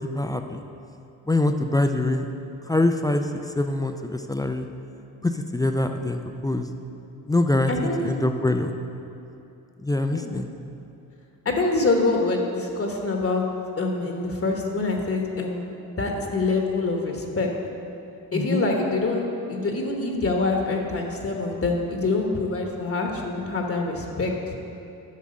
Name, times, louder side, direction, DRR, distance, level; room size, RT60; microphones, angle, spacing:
voice 1, 0.1-0.6 1.3-2.3 2.7-3.3 3.6-4.7 5.2-6.7 7.3-8.8 9.8-10.5 18.3-18.6, left 2 dB, 10° left, 6 dB, 0.3 m, -24 dB
voice 2, 7.7-8.1 10.1-10.3 11.4-13.5 13.8-17.5 18.3-24.5, left 3 dB, 35° left, 1 dB, 1.1 m, -25 dB
8.3 x 6.1 x 5.3 m, 2.8 s
cardioid pair, 80°, 37 cm